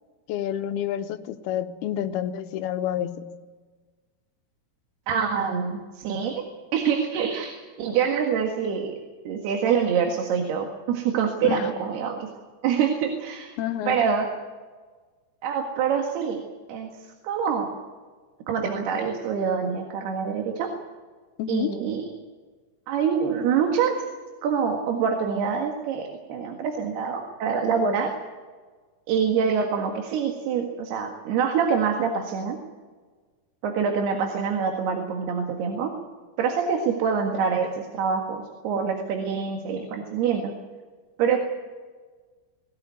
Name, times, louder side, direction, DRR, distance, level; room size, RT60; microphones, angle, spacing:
voice 1, 0.3-3.3 11.4-11.7 13.6-14.0 21.4-21.7, left 10 dB, 80° left, 8 dB, 2.9 m, -29 dB
voice 2, 5.1-6.4 6.7-8.9 9.3-12.3 12.6-13.6 13.9-14.3 15.4-16.4 16.7-16.9 17.2-17.8 18.5-20.7 21.5-22.0 22.9-23.9 24.4-28.2 29.1-32.6 33.6-35.9 36.4-40.5 41.2-41.4, right 6 dB, 85° right, 3 dB, 3.8 m, -25 dB
20.5 x 17.0 x 9.4 m, 1.4 s
omnidirectional pair, 4.5 m